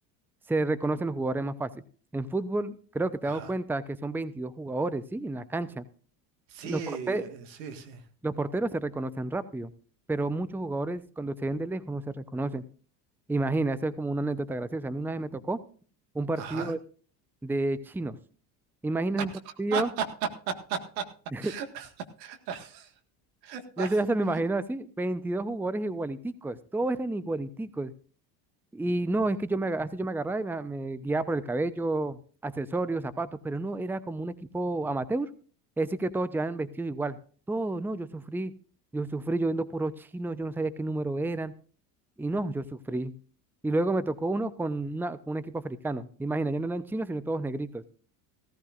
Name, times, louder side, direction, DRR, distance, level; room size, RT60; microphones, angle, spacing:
voice 1, 0.5-1.7 2.1-5.8 6.6-6.8 7.1-7.2 8.2-9.7 10.1-12.6 13.3-15.6 16.1-16.8 17.4-18.2 18.8-19.3 19.6-19.9 21.3-21.5 23.8-27.9 28.7-35.3 35.8-37.2 37.5-38.5 38.9-41.5 42.2-43.1 43.6-47.8, right 2 dB, 5° right, 14 dB, 0.7 m, -30 dB
voice 2, 6.5-8.0 16.4-16.8 19.5-20.1 20.5-21.1 21.4-21.9 22.2-22.9 23.4-24.0 24.3-24.4, right 7 dB, 85° right, 7 dB, 1.9 m, -36 dB
16.5 x 14.5 x 2.5 m, 0.41 s
hypercardioid pair, 80°, 49 cm